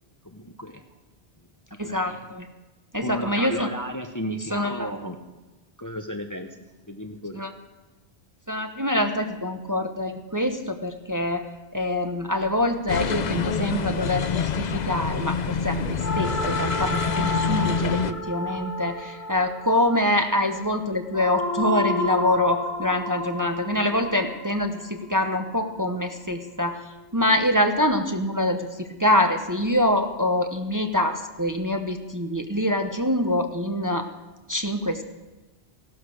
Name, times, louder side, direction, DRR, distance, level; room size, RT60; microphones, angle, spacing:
voice 1, 0.2-0.8 1.8-2.3 3.0-5.2 5.8-6.5 6.9-7.4, equal, 20° left, 6 dB, 0.9 m, -34 dB
voice 2, 1.8-2.4 2.9-3.7 4.5-4.9 7.4-7.5 8.5-11.4 11.7-26.8 27.1-34.1 34.5-35.0, left 1 dB, 20° right, 5 dB, 1.0 m, -25 dB
sound 1, 12.9-18.1, left 6 dB, 45° left, 0.7 m, -26 dB
sound 2, 16.0-26.2, equal, 65° left, 1.8 m, -31 dB
16.0 x 12.0 x 6.5 m, 1.1 s
omnidirectional pair, 1.2 m